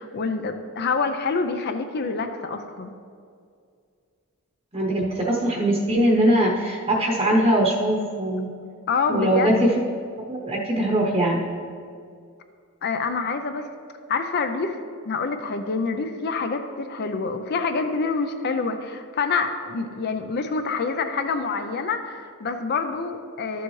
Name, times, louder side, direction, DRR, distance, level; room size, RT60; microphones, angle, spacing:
voice 1, 0.0-3.0 8.9-9.6 12.8-13.7 14.1-14.8 15.1-23.6, left 4 dB, 45° left, 7 dB, 0.5 m, -26 dB
voice 2, 4.7-8.5 9.1-9.7 10.3-11.4, right 1 dB, 25° right, -2 dB, 0.9 m, -21 dB
12.0 x 6.9 x 3.2 m, 2.3 s
head